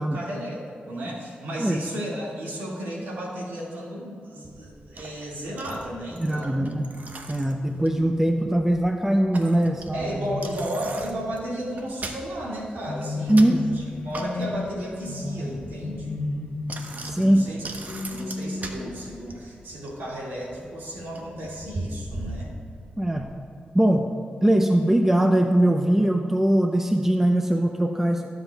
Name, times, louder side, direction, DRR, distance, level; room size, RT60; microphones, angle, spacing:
voice 1, 0.0-6.7 9.9-16.1 17.2-22.5, equal, 90° right, -4 dB, 2.0 m, -34 dB
Bicycle, 4.4-23.3, right 2 dB, 50° right, 1.0 m, -41 dB
voice 2, 6.2-6.9 7.3-10.2 13.3-13.6 17.1-17.5 23.0-23.3 23.7-24.1 24.4-28.2, right 1 dB, 10° right, 4 dB, 0.6 m, -21 dB
sound 1, 10.2-11.3 12.9-19.4, left 3 dB, 65° left, 0.9 m, -34 dB
16.5 x 7.6 x 2.3 m, 2.2 s
cardioid pair, 55°, 3 cm